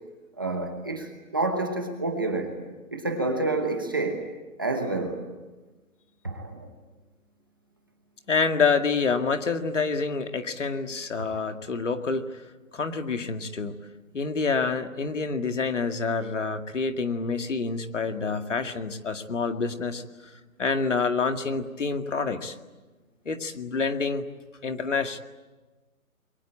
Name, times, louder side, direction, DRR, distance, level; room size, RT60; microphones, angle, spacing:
voice 1, 0.4-2.6 2.9-4.3 4.6-5.2 6.2-6.7 11.3-11.4, right 2 dB, 15° right, 3 dB, 1.1 m, -28 dB
voice 2, 8.3-12.2 12.7-13.8 14.1-20.0 20.6-22.5 23.3-24.2 24.6-25.2, left 4 dB, 55° left, 6 dB, 2.2 m, -27 dB
29.5 x 23.0 x 8.7 m, 1.2 s
hypercardioid pair, 180°, 43 cm